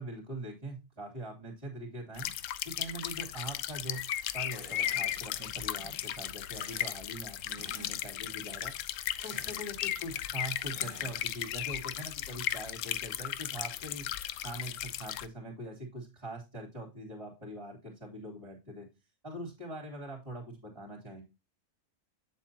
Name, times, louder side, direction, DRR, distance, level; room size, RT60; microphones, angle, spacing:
voice 1, 0.0-2.3 2.6-4.0 4.3-8.7 9.2-14.1 14.4-18.9 19.2-21.2, right 1 dB, 25° right, -6 dB, 2.9 m, -43 dB
sound 1, 2.2-15.3, left 11 dB, 75° left, 0.9 m, -36 dB
sound 2, 4.5-6.0 6.3-7.0 7.5-8.7 9.1-9.7 10.0-11.6, left 2 dB, 25° left, 1.5 m, -52 dB
8.3 x 7.6 x 2.8 m, 0.27 s
omnidirectional pair, 1.4 m